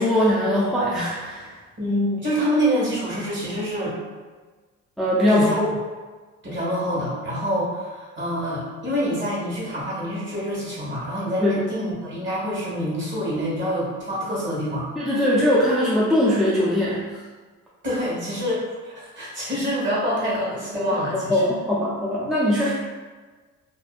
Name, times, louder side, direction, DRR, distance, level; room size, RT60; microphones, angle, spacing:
voice 1, 0.0-1.5 5.0-5.7 11.4-11.6 15.0-17.1 20.7-21.0 21.3-22.7, left 1 dB, ahead, -8 dB, 0.4 m, -21 dB
voice 2, 1.8-3.9 5.3-5.6 6.4-14.9 17.8-21.4, equal, 40° right, -6 dB, 1.2 m, -26 dB
2.6 x 2.1 x 2.4 m, 1.4 s
cardioid pair, 90°, 30 cm